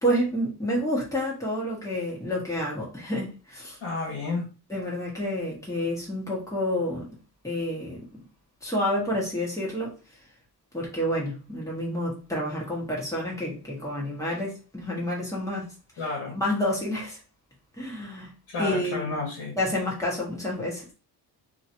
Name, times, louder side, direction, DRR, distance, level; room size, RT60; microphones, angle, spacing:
voice 1, 0.0-3.8 4.7-7.1 7.4-8.1 8.6-9.9 10.7-15.7 16.3-17.2 17.8-18.3 18.6-19.1 19.6-20.9, equal, 5° left, 1.3 m, -29 dB
voice 2, 3.8-4.5 16.0-16.4 18.5-19.5, left 3 dB, 55° left, 1.5 m, -31 dB
3.0 x 2.9 x 2.7 m
cardioid pair, 130°, 42 cm